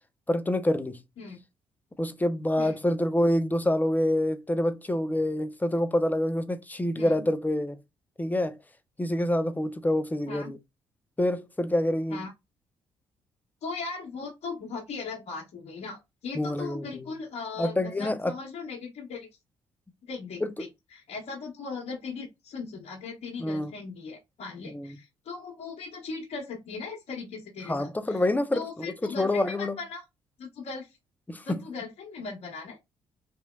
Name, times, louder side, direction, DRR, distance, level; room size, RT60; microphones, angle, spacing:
voice 1, 0.3-1.0 2.0-7.8 8.2-8.6 9.0-10.6 11.2-12.2 16.3-17.0 17.6-18.3 20.4-20.5 23.4-23.7 24.6-25.0 27.6-28.6 29.0-29.8 31.3-31.6, left 1 dB, 15° left, 0.7 m, -27 dB
voice 2, 13.6-19.3 20.1-28.2 28.5-30.0 30.4-31.0 31.4-32.8, left 4 dB, 60° left, 1.1 m, -38 dB
3.0 x 2.7 x 2.3 m
hypercardioid pair, 50°, 12 cm